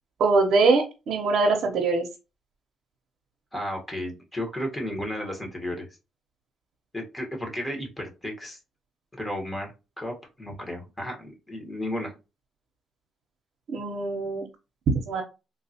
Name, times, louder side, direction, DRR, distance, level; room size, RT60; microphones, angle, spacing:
voice 1, 0.2-2.1 13.7-14.4 15.1-15.2, right 3 dB, 70° right, 1 dB, 0.7 m, -22 dB
voice 2, 3.5-5.9 6.9-8.6 9.1-9.7 10.0-12.2, left 1 dB, 15° left, 1 dB, 1.1 m, -33 dB
3.7 x 2.3 x 2.7 m, 0.29 s
cardioid pair, 90°, 0 cm